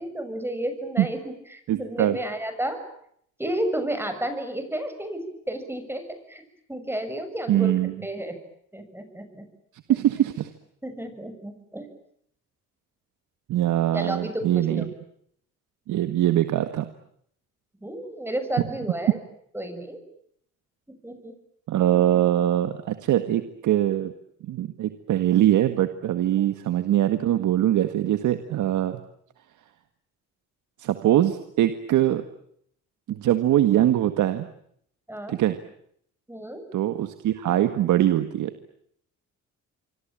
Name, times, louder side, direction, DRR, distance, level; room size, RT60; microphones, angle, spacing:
voice 1, 0.0-2.8 3.4-6.4 6.7-7.8 8.0-8.4 8.7-9.5 10.8-11.9 13.9-14.9 17.8-19.2 19.5-20.0 21.0-21.3 26.3-26.5 35.1-35.4 36.3-36.6, right 1 dB, 10° right, 8 dB, 6.9 m, -32 dB
voice 2, 1.7-2.2 7.5-7.9 9.9-10.5 13.5-14.9 15.9-16.9 21.7-24.1 24.4-29.0 30.8-32.2 33.1-34.5 35.3-35.6 36.7-38.5, right 12 dB, 80° right, 9 dB, 1.8 m, -22 dB
27.0 x 25.0 x 9.0 m, 0.70 s
cardioid pair, 90°, 30 cm